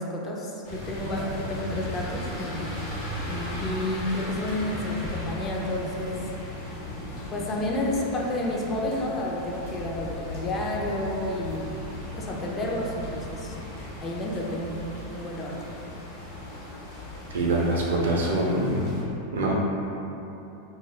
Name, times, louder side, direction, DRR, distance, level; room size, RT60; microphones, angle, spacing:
voice 1, 0.0-6.2 7.3-11.7 12.1-13.6 14.0-15.5, left 1 dB, 30° left, -2 dB, 0.4 m, -31 dB
sound 1, 0.6-19.0, left 1 dB, 65° left, 0.8 m, -37 dB
voice 2, 17.3-19.0 19.3-19.5, right 1 dB, 80° right, -3 dB, 0.4 m, -24 dB
2.2 x 2.0 x 3.1 m, 3.0 s
hypercardioid pair, 100°, 0 cm